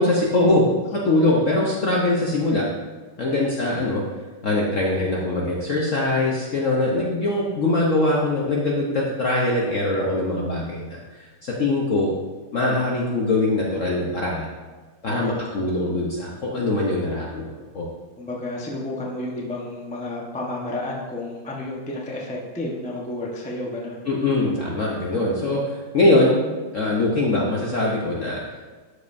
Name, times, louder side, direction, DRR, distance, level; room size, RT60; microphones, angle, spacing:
voice 1, 0.0-2.7 3.2-4.0 4.4-12.1 12.5-14.5 15.0-17.9 24.1-26.4 26.7-28.4, left 2 dB, 55° left, -3 dB, 0.8 m, -22 dB
voice 2, 15.1-15.4 18.2-24.1, left 1 dB, 10° left, -3 dB, 0.4 m, -31 dB
12.0 x 5.3 x 2.6 m, 1.4 s
omnidirectional pair, 2.4 m